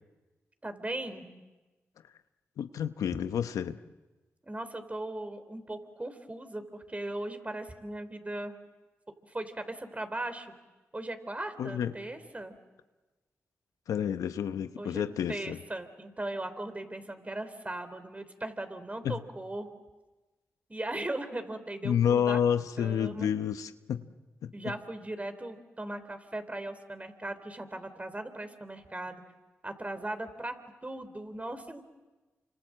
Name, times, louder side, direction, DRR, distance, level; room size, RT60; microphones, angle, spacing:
voice 1, 0.6-1.3 4.4-8.6 9.3-10.5 10.9-12.5 14.8-19.7 20.7-22.4 22.8-23.3 24.5-29.2 29.6-30.5 30.8-31.8, right 1 dB, 25° right, 9 dB, 3.7 m, -38 dB
voice 2, 2.6-3.8 11.6-11.9 13.9-15.6 19.0-19.2 21.8-24.0 24.4-24.5, left 8 dB, 85° left, 11 dB, 0.9 m, -29 dB
29.0 x 26.0 x 7.5 m, 1.2 s
supercardioid pair, 45°, 6 cm